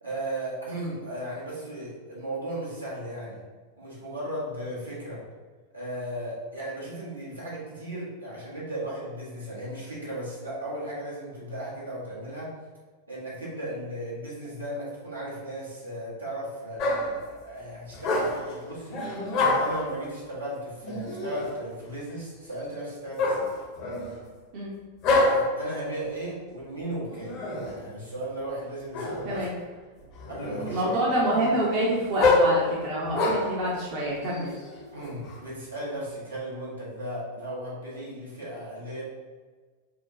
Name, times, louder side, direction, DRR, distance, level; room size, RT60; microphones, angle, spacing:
voice 1, 0.0-3.4 3.8-5.2 5.7-12.5 13.1-19.2 19.5-23.6 25.2-27.3 27.8-29.5 30.3-31.0 31.3-31.4 34.9-39.0, right 1 dB, 80° right, -6 dB, 1.3 m, -36 dB
sound 1, 16.8-17.2 17.9-18.5 18.9-19.9 20.8-21.6 23.2-24.2 25.0-25.6 27.1-27.8 28.9-29.5 30.0-30.8 31.3-33.6 34.3-35.4, left 2 dB, 40° left, 0.8 m, -26 dB
voice 2, 30.7-34.5, right 1 dB, 45° right, -5 dB, 0.8 m, -27 dB
5.2 x 2.2 x 2.7 m, 1.4 s
figure-of-eight pair, 90°, 0 cm